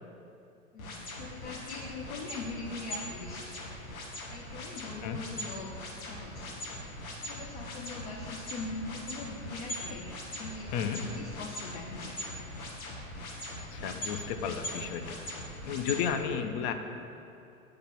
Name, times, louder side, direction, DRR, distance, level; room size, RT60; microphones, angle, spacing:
voice 1, 0.7-3.8 4.3-6.6 7.2-10.1 10.4-12.2, left 3 dB, 55° left, -1 dB, 0.9 m, -42 dB
sound 1, 0.8-16.1, left 1 dB, 80° left, 1.5 m, -40 dB
voice 2, 10.7-11.0 13.7-15.2 15.7-16.7, left 7 dB, 35° left, 6 dB, 0.5 m, -33 dB
8.4 x 3.3 x 5.8 m, 2.6 s
hypercardioid pair, 105°, 42 cm